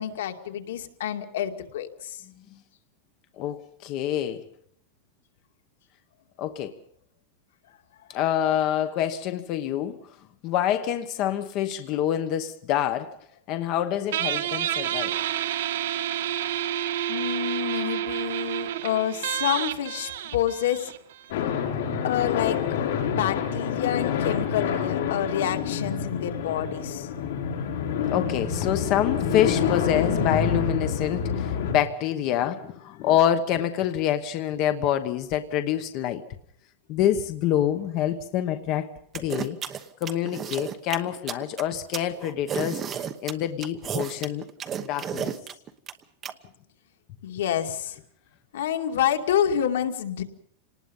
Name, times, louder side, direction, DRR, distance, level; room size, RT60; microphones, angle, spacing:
voice 1, 0.0-2.2 17.1-20.9 21.7-21.8 22.0-22.6 23.1-27.1 47.2-48.0 48.5-50.2, left 10 dB, 85° left, 2.5 m, -28 dB
voice 2, 3.4-4.4 6.4-6.8 8.1-10.0 10.4-13.2 13.5-15.2 28.1-36.2 36.9-38.9 39.1-39.6 40.0-44.4 44.8-45.3, left 11 dB, 35° left, 1.1 m, -26 dB
Guitar, 14.1-21.3, right 11 dB, 70° right, 1.3 m, -29 dB
sound 1, 21.3-31.7, left 7 dB, 65° left, 6.0 m, -27 dB
sound 2, 39.1-46.3, right 8 dB, 20° right, 1.0 m, -32 dB
27.5 x 19.5 x 5.5 m
supercardioid pair, 175°, 0 cm